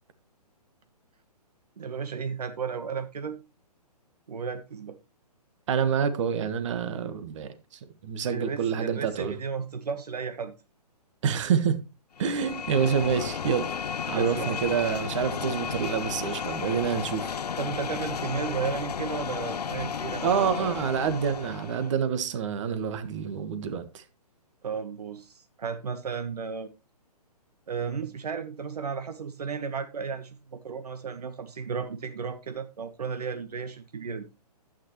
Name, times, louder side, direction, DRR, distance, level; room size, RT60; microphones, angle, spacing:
voice 1, 1.8-3.4 4.3-5.0 8.3-10.5 14.1-14.6 17.6-20.7 24.6-26.7 27.7-34.2, right 6 dB, 70° right, 1.2 m, -34 dB
voice 2, 5.7-7.5 8.0-9.4 11.2-11.8 12.2-13.7 14.1-17.3 20.2-24.0, right 7 dB, 50° right, 1.5 m, -27 dB
sound 1, 12.2-22.0, left 7 dB, 75° left, 0.7 m, -33 dB
11.5 x 8.9 x 3.1 m
figure-of-eight pair, 130°, 21 cm